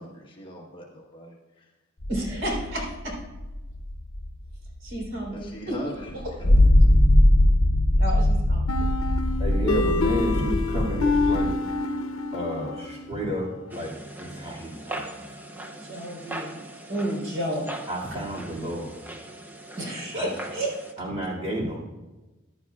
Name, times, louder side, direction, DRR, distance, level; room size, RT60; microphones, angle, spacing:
voice 1, 0.0-1.7 5.3-6.9, equal, 25° left, -2 dB, 1.4 m, -41 dB
sound 1, 2.0-5.3 6.1-11.5, left 1 dB, 55° left, 0.9 m, -21 dB
voice 2, 2.1-3.1 4.8-5.8 8.0-8.6 15.8-16.6 16.9-17.7 19.8-20.7, right 1 dB, 65° right, -1 dB, 3.6 m, -31 dB
sound 2, 8.7-13.3, left 3 dB, 85° left, 0.7 m, -27 dB
voice 3, 9.4-11.5 12.3-13.9 14.2-15.0 17.9-18.9 20.1-20.3 21.0-21.8, right 1 dB, 30° right, -4 dB, 2.4 m, -30 dB
sound 3, 13.7-20.9, right 1 dB, 10° right, 0.6 m, -40 dB
14.5 x 11.0 x 2.4 m, 1.1 s
head